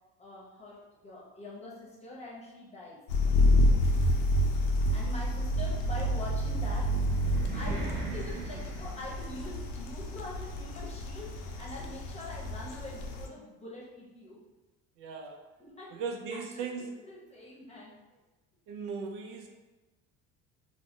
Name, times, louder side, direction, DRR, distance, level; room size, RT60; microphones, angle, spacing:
voice 1, 0.2-3.0 4.9-7.0 7.5-14.4 15.6-16.0 16.6-16.7 17.0-18.0, left 1 dB, 20° left, -4 dB, 0.8 m, -44 dB
sound 1, 3.1-13.3, left 1 dB, 80° left, 0.5 m, -29 dB
sound 2, 6.4-9.6, right 3 dB, 30° right, 0.7 m, -38 dB
voice 2, 15.0-15.4 15.9-17.0 18.7-19.5, right 5 dB, 65° right, 3 dB, 0.5 m, -38 dB
2.3 x 2.1 x 3.5 m, 1.1 s
supercardioid pair, 100°, 34 cm